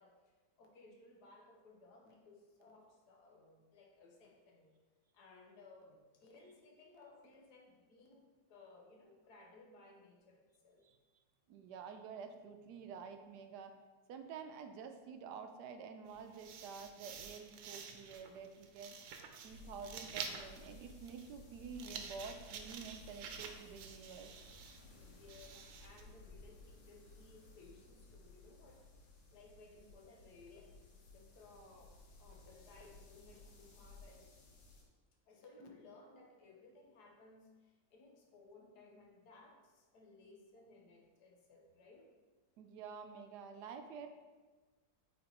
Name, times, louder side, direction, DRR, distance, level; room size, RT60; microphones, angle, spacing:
voice 1, 0.0-4.7 5.1-10.8 24.9-30.9 31.1-34.4 35.3-42.1, left 3 dB, 65° left, 2 dB, 1.3 m, -61 dB
voice 2, 11.5-13.7 14.1-18.9 19.4-24.3 42.6-44.1, right 6 dB, 70° right, 7 dB, 1.0 m, -49 dB
sound 1, 16.1-26.0, right 6 dB, 90° right, 1.4 m, -50 dB
sound 2, 19.5-34.8, left 2 dB, 90° left, 1.7 m, -58 dB
8.5 x 3.9 x 2.9 m, 1.3 s
omnidirectional pair, 2.0 m